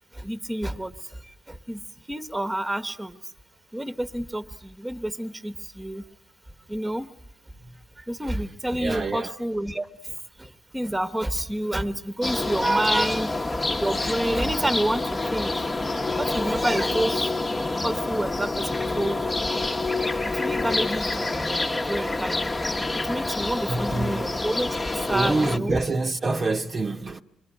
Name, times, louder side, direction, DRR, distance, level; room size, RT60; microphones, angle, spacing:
voice 1, 0.1-1.8 2.1-3.2 3.7-6.0 6.7-7.1 8.0-13.4 13.8-15.7 16.2-17.3 17.8-22.5 22.9-25.8, right 1 dB, 10° right, 1.3 m, -29 dB
voice 2, 8.8-9.3 23.7-24.2 25.1-27.2, right 3 dB, 35° right, 1.1 m, -26 dB
sound 1, 12.2-25.6, left 2 dB, 20° left, 1.2 m, -27 dB
26.5 x 22.5 x 10.0 m
cardioid pair, 90°, 0 cm